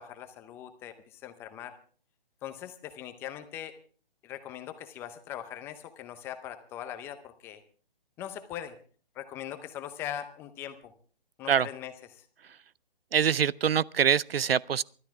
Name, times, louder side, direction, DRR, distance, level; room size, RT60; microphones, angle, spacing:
voice 1, 0.0-1.8 2.4-3.7 4.2-7.6 8.2-8.8 9.1-10.9 11.4-12.3, left 10 dB, 10° left, 0.6 m, -41 dB
voice 2, 13.1-14.8, right 8 dB, 85° right, 0.6 m, -24 dB
23.5 x 13.0 x 3.5 m
hypercardioid pair, 155°, 29 cm